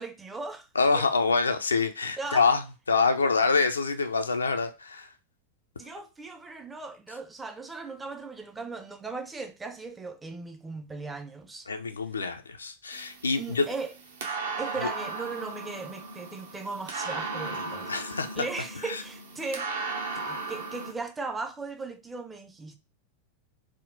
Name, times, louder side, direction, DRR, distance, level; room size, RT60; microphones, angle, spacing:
voice 1, 0.0-0.7 0.9-1.1 2.2-2.5 5.8-11.7 13.3-13.9 14.6-19.7 20.1-22.8, right 3 dB, 10° right, 0.4 m, -38 dB
voice 2, 0.8-2.6 2.9-5.1 11.7-13.7 14.8-14.9 17.9-18.4 18.9-19.0, left 4 dB, 75° left, 0.3 m, -26 dB
sound 1, 12.9-20.9, right 3 dB, 60° right, 0.6 m, -36 dB
3.5 x 2.1 x 2.6 m
figure-of-eight pair, 90°, 0 cm